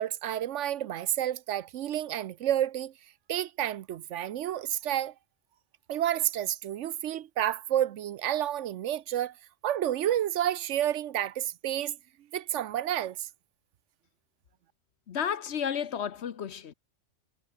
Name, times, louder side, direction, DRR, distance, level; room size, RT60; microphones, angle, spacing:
voice 1, 0.0-2.9 3.3-5.1 5.9-9.3 9.6-12.0 12.3-13.3, right 11 dB, 75° right, 1.0 m, -30 dB
voice 2, 15.1-16.7, left 8 dB, 65° left, 1.1 m, -32 dB
omnidirectional pair, 1.3 m